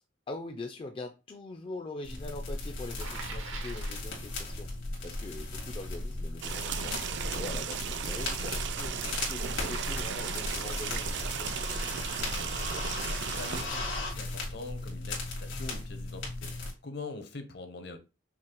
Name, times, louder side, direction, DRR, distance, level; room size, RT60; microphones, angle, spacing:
voice 1, 0.3-4.7 5.0-7.0 7.3-12.1, left 2 dB, 30° left, 0.3 m, -43 dB
sound 1, 2.0-16.7, left 2 dB, 90° left, 1.9 m, -36 dB
Bicycle, 3.0-4.1 9.6-10.9, right 4 dB, 85° right, 0.8 m, -43 dB
sound 2, 6.4-13.6, right 7 dB, 65° right, 0.4 m, -36 dB
voice 2, 12.3-18.0, left 3 dB, 60° left, 0.7 m, -44 dB
5.7 x 2.0 x 2.9 m
head